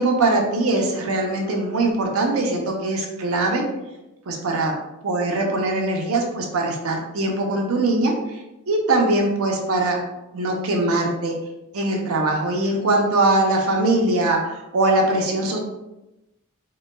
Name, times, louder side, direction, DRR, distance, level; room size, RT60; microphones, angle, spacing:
voice 1, 0.0-3.6 4.3-4.7 5.0-8.4 8.7-10.0 10.3-11.4 11.7-15.6, right 2 dB, 65° right, 1 dB, 0.6 m, -21 dB
3.8 x 2.2 x 2.2 m, 0.94 s
head